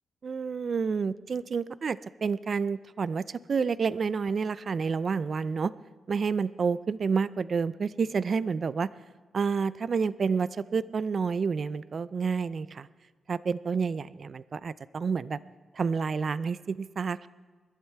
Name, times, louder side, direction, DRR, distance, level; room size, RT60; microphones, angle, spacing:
voice 1, 0.2-5.7 6.1-8.9 9.3-12.9 13.3-15.4 15.7-17.3, right 5 dB, 45° right, 18 dB, 0.3 m, -29 dB
20.5 x 12.0 x 4.5 m, 1.4 s
wide cardioid pair, 140°, 0 cm